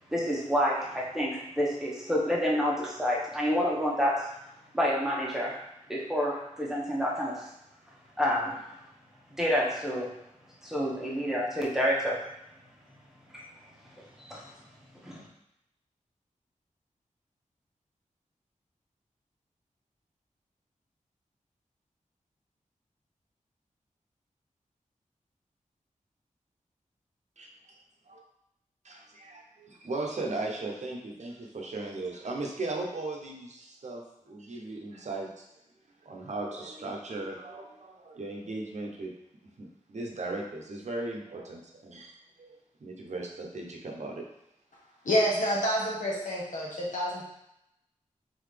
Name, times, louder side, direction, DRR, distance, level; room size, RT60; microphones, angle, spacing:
voice 1, 0.1-4.3 4.7-5.6 5.9-7.5 8.2-8.6 9.4-10.1 10.6-12.2 13.3-13.4 14.2-14.4 15.0-15.2, equal, 5° right, -6 dB, 1.1 m, -28 dB
voice 2, 28.8-35.4 36.0-39.1 39.6-44.3, right 2 dB, 60° right, -1 dB, 0.8 m, -37 dB
voice 3, 45.0-47.3, equal, 70° left, -5 dB, 1.3 m, -28 dB
3.9 x 3.9 x 3.3 m, 0.83 s
wide cardioid pair, 100°, 13 cm